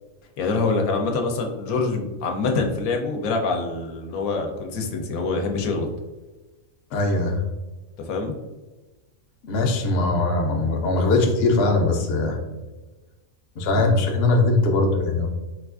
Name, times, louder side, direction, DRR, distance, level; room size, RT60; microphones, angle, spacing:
voice 1, 0.4-5.9 8.1-8.3, left 3 dB, 85° left, 2 dB, 1.0 m, -25 dB
voice 2, 6.9-7.4 9.4-12.4 13.6-15.3, left 2 dB, 60° left, 3 dB, 0.7 m, -21 dB
4.3 x 2.4 x 2.3 m, 1.2 s
omnidirectional pair, 1.4 m